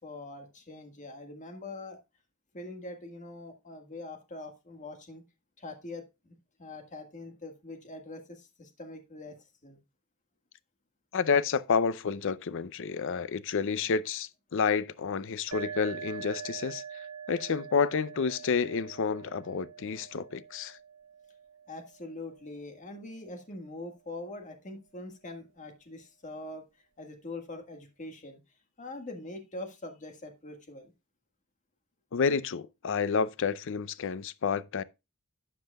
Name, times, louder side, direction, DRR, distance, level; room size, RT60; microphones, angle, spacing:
voice 1, 0.0-2.0 2.5-5.2 5.6-9.8 21.7-26.6 27.0-28.4 28.8-30.9, left 2 dB, 35° left, 1.7 m, -43 dB
voice 2, 11.1-16.8 17.3-20.8 32.1-34.8, left 5 dB, 60° left, 0.5 m, -29 dB
sound 1, 15.5-23.0, right 7 dB, 85° right, 1.5 m, -45 dB
12.0 x 7.6 x 2.3 m
head